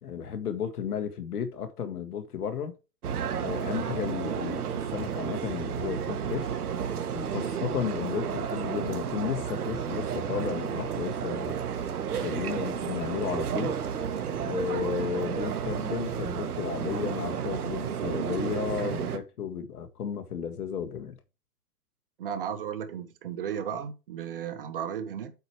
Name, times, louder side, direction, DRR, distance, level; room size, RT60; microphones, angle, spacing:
voice 1, 0.0-2.7 3.4-6.6 7.1-11.6 12.1-13.8 14.4-21.2, left 8 dB, 70° left, 1.8 m, -33 dB
sound 1, 3.0-19.2, right 8 dB, 65° right, 1.8 m, -32 dB
voice 2, 22.2-25.3, right 8 dB, 35° right, 1.1 m, -34 dB
8.1 x 4.8 x 4.7 m
hypercardioid pair, 170°, 47 cm